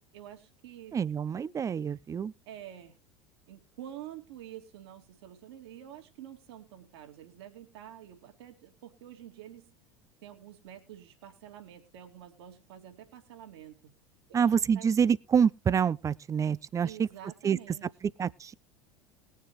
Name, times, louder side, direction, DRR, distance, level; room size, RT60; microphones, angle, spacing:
voice 1, 0.1-1.0 2.5-3.0 3.5-9.7 10.2-13.9 14.3-14.9 16.8-17.9, right 11 dB, 60° right, 2.6 m, -48 dB
voice 2, 0.9-2.3 14.3-17.1 17.4-17.6 18.2-18.5, right 7 dB, 20° right, 0.6 m, -27 dB
20.5 x 7.3 x 3.2 m
figure-of-eight pair, 75°, 15 cm